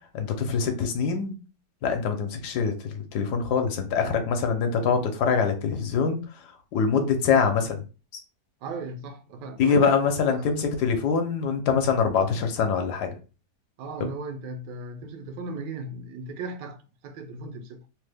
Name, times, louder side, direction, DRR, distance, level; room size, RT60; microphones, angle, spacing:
voice 1, 0.1-1.3 1.8-6.2 6.7-7.8 9.6-13.2, left 6 dB, 75° left, 1.2 m, -24 dB
voice 2, 8.6-10.0 10.3-10.5 13.8-16.8 17.0-17.8, right 3 dB, 85° right, 1.2 m, -36 dB
3.1 x 2.1 x 3.3 m
omnidirectional pair, 1.8 m